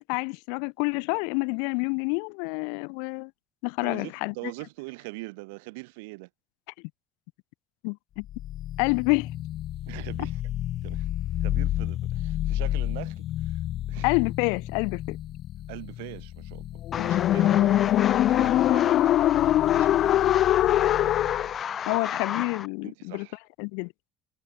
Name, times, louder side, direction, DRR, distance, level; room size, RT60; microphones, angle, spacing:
voice 1, 0.0-3.3 3.6-4.3 7.8-8.3 8.8-9.3 14.0-15.2 17.0-17.2 21.9-23.3 23.6-23.9, left 40 dB or more, 80° left, 1.1 m, -28 dB
voice 2, 3.8-6.3 9.9-10.5 10.8-11.1 11.4-13.6 13.9-14.1 15.7-16.6 17.0-21.1 22.8-23.4, right 27 dB, 85° right, 6.5 m, -42 dB
sound 1, 8.3-21.5, left 13 dB, 55° left, 0.9 m, -25 dB
sound 2, 16.9-22.7, left 8 dB, 40° left, 0.4 m, -33 dB
supercardioid pair, 100°, 0 cm